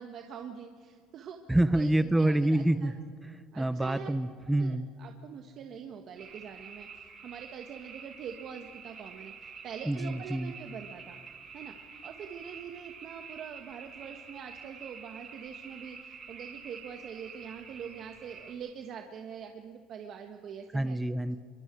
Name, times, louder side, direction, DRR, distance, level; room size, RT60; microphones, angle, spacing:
voice 1, 0.0-2.9 3.5-4.1 4.6-11.2 11.5-11.7 12.0-21.0, right 7 dB, 55° right, 4 dB, 1.5 m, -44 dB
voice 2, 1.5-2.9 3.6-4.9 9.8-10.5 20.7-21.4, right 1 dB, 10° right, 12 dB, 0.9 m, -27 dB
sound 1, 6.2-18.5, right 5 dB, 40° right, 6.5 m, -48 dB
25.5 x 24.0 x 4.7 m, 2.1 s
supercardioid pair, 105°, 0 cm